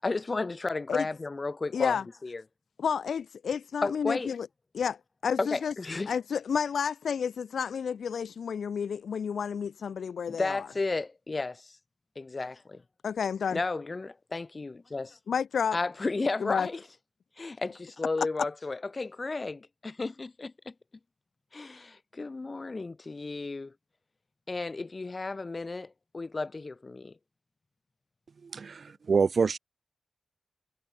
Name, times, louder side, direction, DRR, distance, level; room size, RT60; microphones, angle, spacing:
voice 1, 0.0-2.4 3.8-4.3 5.4-6.1 10.3-11.8 12.2-12.8 13.5-15.2 15.7-16.8 17.4-20.7 21.5-23.7 24.5-27.1, left 3 dB, 35° left, 7.2 m, -33 dB
voice 2, 1.7-2.0 2.8-4.5 4.7-5.0 5.2-5.7 6.1-10.7 13.0-13.6 15.3-15.8 16.4-16.7 18.2-18.3, left 7 dB, 85° left, 4.7 m, -30 dB
voice 3, 28.4-29.6, right 5 dB, 55° right, 2.5 m, -26 dB
wide cardioid pair, 110°, 0 cm